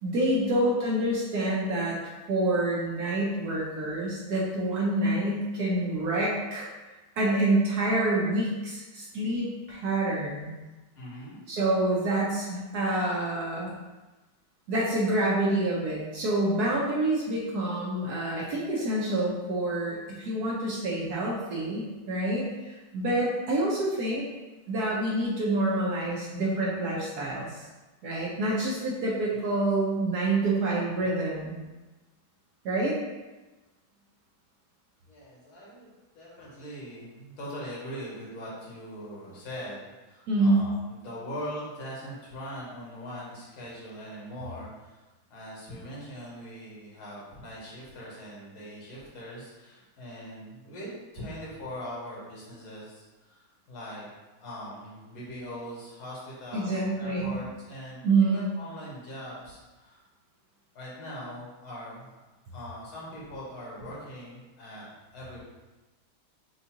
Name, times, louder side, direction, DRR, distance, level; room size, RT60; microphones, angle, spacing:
voice 1, 0.0-2.0 2.3-6.7 7.2-10.5 11.5-13.7 14.7-24.2 24.7-27.6 28.0-31.6 32.6-33.0 40.3-40.6 56.5-57.3 58.0-58.5, right 2 dB, 65° right, -5 dB, 1.1 m, -27 dB
voice 2, 11.0-11.4 35.1-35.9 36.2-45.0 45.3-54.1 54.4-60.0 60.7-62.2 62.5-65.4, equal, 85° left, -6 dB, 2.1 m, -41 dB
6.3 x 2.4 x 2.8 m, 1.1 s
omnidirectional pair, 2.2 m